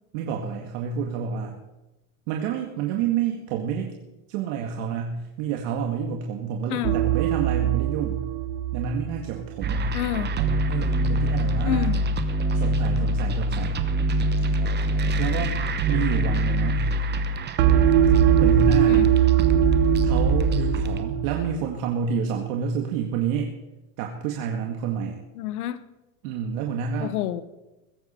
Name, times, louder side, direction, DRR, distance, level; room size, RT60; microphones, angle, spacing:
voice 1, 0.1-1.6 2.3-3.9 4.3-8.2 8.7-9.9 10.1-11.9 12.5-13.9 14.6-14.8 15.2-15.6 15.9-16.9 18.3-19.1 20.0-23.6 24.0-25.2 26.2-27.2, right 7 dB, 65° right, 1 dB, 2.1 m, -29 dB
sound 1, 6.8-9.9 17.6-21.6, right 13 dB, 85° right, 1.2 m, -22 dB
sound 2, 9.6-21.0, right 1 dB, 25° right, 1.1 m, -24 dB
voice 2, 9.9-10.3 11.6-12.0 18.9-19.1 25.3-25.8 27.0-27.4, left 12 dB, 85° left, 14 dB, 1.2 m, -28 dB
21.5 x 10.5 x 4.5 m, 1.0 s
supercardioid pair, 135°, 43 cm